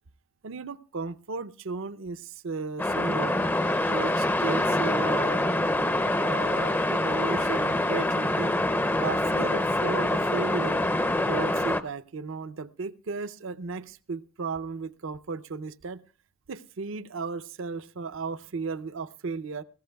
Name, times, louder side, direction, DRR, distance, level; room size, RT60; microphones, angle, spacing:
voice 1, 0.4-3.4 3.9-5.4 6.2-8.6 9.0-10.8 11.3-16.0 16.5-19.6, right 4 dB, 60° right, 14 dB, 0.5 m, -35 dB
sound 1, 2.8-11.8, left 1 dB, 10° left, 0.5 m, -25 dB
20.0 x 15.0 x 2.3 m, 0.37 s
head